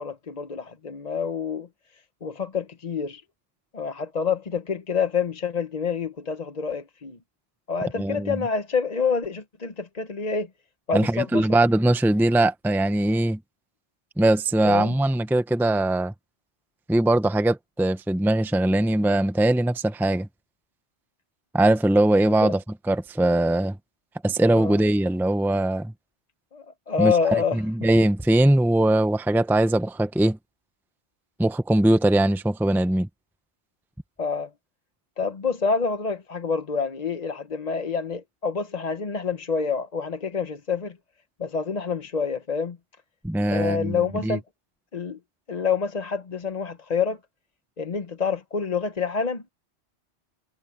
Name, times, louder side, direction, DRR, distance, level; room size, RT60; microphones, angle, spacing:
voice 1, 0.0-1.7 2.2-3.2 3.7-7.2 7.7-10.5 10.9-11.5 14.6-14.9 22.4-22.5 24.6-24.8 26.5-27.6 34.2-34.5 35.2-41.0 41.4-42.8 43.5-44.4 44.9-45.2 45.5-47.2 47.8-49.4, left 5 dB, 40° left, 1.0 m, -27 dB
voice 2, 7.9-8.4 10.9-13.4 14.2-16.1 16.9-20.3 21.5-22.6 22.9-23.8 24.2-25.9 27.0-27.1 27.5-30.4 31.4-33.1 43.2-44.4, right 1 dB, ahead, 0.8 m, -21 dB
omnidirectional pair, 1.2 m